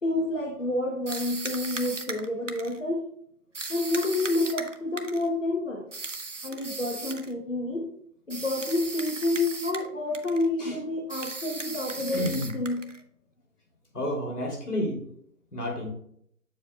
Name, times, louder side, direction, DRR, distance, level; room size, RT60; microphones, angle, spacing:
voice 1, 0.0-3.1 3.7-5.9 6.4-7.9 8.3-12.9, left 2 dB, 50° left, 1 dB, 0.9 m, -29 dB
sound 1, 1.1-2.8 3.5-5.3 5.9-7.3 8.3-9.9 10.1-10.5 11.1-13.0, right 3 dB, 50° right, 0.6 m, -37 dB
voice 2, 12.0-12.5 13.9-15.0 15.5-15.9, left 1 dB, 70° left, 0 dB, 3.0 m, -30 dB
7.7 x 7.1 x 2.3 m, 0.68 s
figure-of-eight pair, 175°, 47 cm